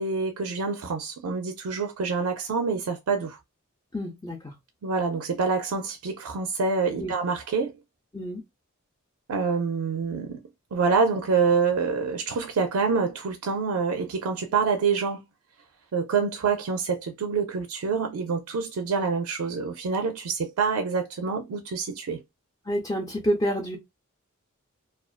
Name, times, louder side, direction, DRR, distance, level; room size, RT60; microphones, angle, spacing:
voice 1, 0.0-3.4 4.8-7.7 9.3-10.4 10.7-15.2 15.9-22.2, right 5 dB, 85° right, 0.4 m, -26 dB
voice 2, 3.9-4.5 6.9-7.1 8.1-8.4 22.7-23.8, equal, 15° left, 0.5 m, -28 dB
2.4 x 2.3 x 2.3 m
head